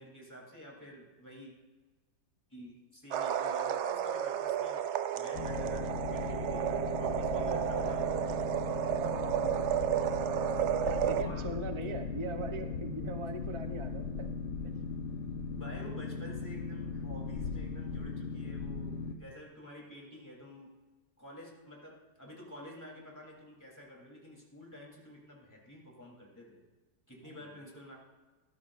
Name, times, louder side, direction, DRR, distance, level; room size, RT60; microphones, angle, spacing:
voice 1, 0.0-1.5 2.5-4.9 5.2-8.4 11.2-11.5 11.7-12.0 15.6-20.7 21.2-26.6 27.1-28.0, equal, 10° left, -2 dB, 3.3 m, -50 dB
sound 1, 3.1-11.2, right 10 dB, 85° right, 0.6 m, -32 dB
Boat Water vehicle, 5.3-19.1, left 4 dB, 70° left, 1.3 m, -38 dB
voice 2, 9.0-10.3 10.8-14.3 14.6-14.7 27.2-27.4, right 2 dB, 40° right, 6 dB, 0.4 m, -41 dB
19.0 x 13.5 x 2.6 m, 1.3 s
omnidirectional pair, 1.8 m